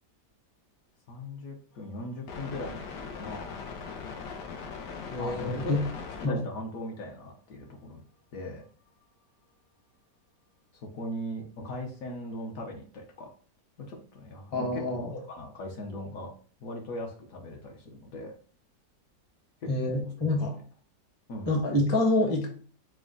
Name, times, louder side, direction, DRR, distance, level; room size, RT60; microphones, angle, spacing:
voice 1, 1.1-3.6 5.2-5.7 6.2-8.0 8.3-8.6 10.8-13.3 13.8-16.3 16.6-18.3 19.6-20.0 21.3-21.5, left 1 dB, 60° left, 1 dB, 1.1 m, -39 dB
sound 1, 1.8-6.3, left 5 dB, 90° left, 1.3 m, -40 dB
voice 2, 5.1-5.8 6.2-6.4 14.5-15.1 19.7-20.6 21.5-22.5, left 2 dB, 25° left, 1 dB, 0.7 m, -27 dB
4.9 x 2.2 x 3.7 m, 0.43 s
omnidirectional pair, 1.8 m